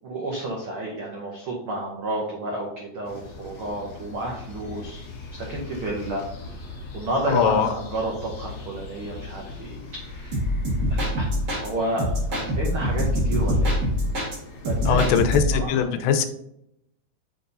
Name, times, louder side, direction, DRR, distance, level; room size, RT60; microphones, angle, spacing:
voice 1, 0.0-5.0 5.3-10.4 10.9-11.3 11.6-13.9 14.6-15.2 15.5-16.2, right 2 dB, 80° right, -2 dB, 1.2 m, -31 dB
sound 1, 3.0-15.3, left 3 dB, 60° left, 1.4 m, -40 dB
voice 2, 7.3-7.7 14.9-16.3, left 8 dB, 85° left, 9 dB, 2.3 m, -21 dB
sound 2, 10.3-11.7 12.0-14.4 14.6-15.7, equal, 40° right, 1.8 m, -24 dB
6.7 x 3.5 x 3.9 m, 0.77 s
omnidirectional pair, 3.9 m